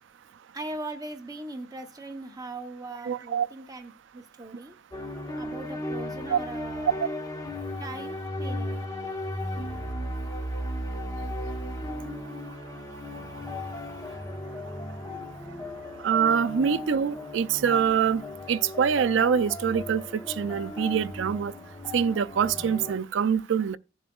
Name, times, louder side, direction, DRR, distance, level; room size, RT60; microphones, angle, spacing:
voice 1, 0.5-4.8 5.4-7.1 7.8-8.9, right 2 dB, 20° right, 0.8 m, -40 dB
voice 2, 3.1-3.5 6.3-6.4 7.0-7.1 16.0-18.2 18.5-21.5 21.9-23.8, right 7 dB, 70° right, 0.4 m, -25 dB
sound 1, 4.9-22.9, left 1 dB, 20° left, 0.9 m, -36 dB
15.5 x 7.2 x 2.3 m
head